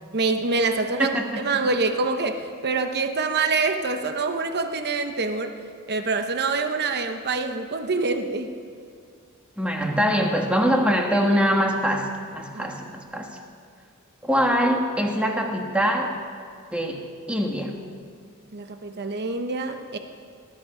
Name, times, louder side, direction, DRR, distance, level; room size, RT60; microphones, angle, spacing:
voice 1, 0.1-5.5 5.9-8.5 12.5-12.7 18.5-20.0, right 3 dB, 50° right, 7 dB, 0.9 m, -25 dB
voice 2, 1.0-1.6 9.6-13.4 14.2-16.1 16.7-17.8, equal, 5° right, 2 dB, 1.4 m, -23 dB
19.0 x 11.5 x 5.0 m, 2.1 s
head